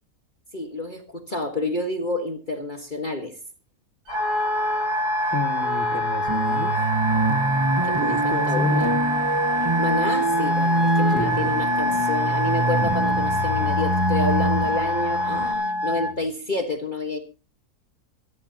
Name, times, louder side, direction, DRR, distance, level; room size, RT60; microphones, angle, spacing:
voice 1, 0.5-3.3 7.8-8.9 9.8-17.2, left 2 dB, 30° left, 4 dB, 1.5 m, -29 dB
sound 1, 4.1-15.5, left 2 dB, 75° left, 3.2 m, -34 dB
Wind instrument woodwind instrument, 4.1-16.1, equal, 90° right, 1.9 m, -25 dB
voice 2, 5.3-6.8 8.0-9.1 11.1-11.6, left 1 dB, 10° left, 5 dB, 1.6 m, -31 dB
sound 2, 6.3-16.2, right 2 dB, 25° right, 0.7 m, -25 dB
25.5 x 11.0 x 2.8 m, 0.32 s
omnidirectional pair, 1.6 m